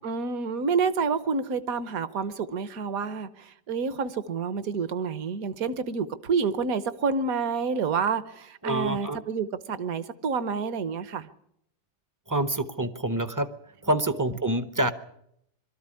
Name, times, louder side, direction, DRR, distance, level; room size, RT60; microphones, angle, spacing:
voice 1, 0.0-11.3, right 5 dB, 60° right, 1.4 m, -28 dB
voice 2, 8.6-9.2 12.3-13.5 13.8-14.9, right 1 dB, 20° right, 0.5 m, -27 dB
22.5 x 13.5 x 9.7 m
omnidirectional pair, 1.8 m